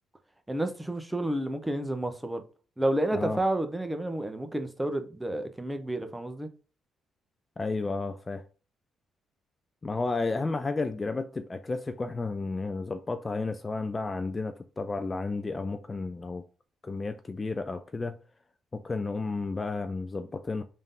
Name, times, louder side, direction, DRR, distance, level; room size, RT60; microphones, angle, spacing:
voice 1, 0.5-2.4 2.8-6.5, right 1 dB, 10° right, 0.6 m, -30 dB
voice 2, 7.6-8.4 9.8-16.4 16.8-18.2 18.7-20.6, left 3 dB, 25° left, 0.3 m, -32 dB
3.5 x 2.6 x 3.7 m
cardioid pair, 90°, 0 cm